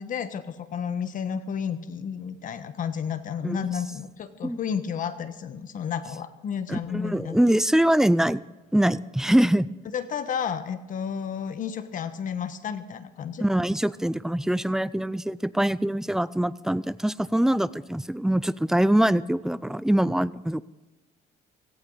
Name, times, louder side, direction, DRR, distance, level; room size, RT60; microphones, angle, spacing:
voice 1, 0.0-7.4 9.9-13.4, left 7 dB, 50° left, 11 dB, 1.3 m, -31 dB
voice 2, 6.7-8.4 8.7-9.7 13.4-20.6, right 1 dB, 5° right, 17 dB, 0.4 m, -23 dB
17.5 x 15.5 x 4.0 m, 1.1 s
cardioid pair, 110°, 17 cm